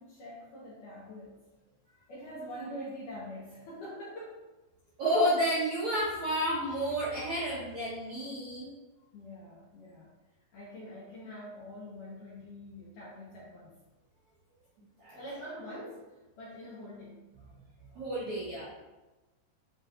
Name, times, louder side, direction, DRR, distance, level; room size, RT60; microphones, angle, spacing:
voice 1, 0.0-1.4 2.1-4.4 9.1-10.1 10.5-13.7 15.1-16.0 16.4-17.2, equal, 70° left, -8 dB, 2.1 m, -44 dB
voice 2, 5.0-8.7 15.0-15.2 17.9-18.7, equal, 75° right, -8 dB, 1.7 m, -30 dB
9.5 x 4.8 x 2.6 m, 1.1 s
omnidirectional pair, 5.4 m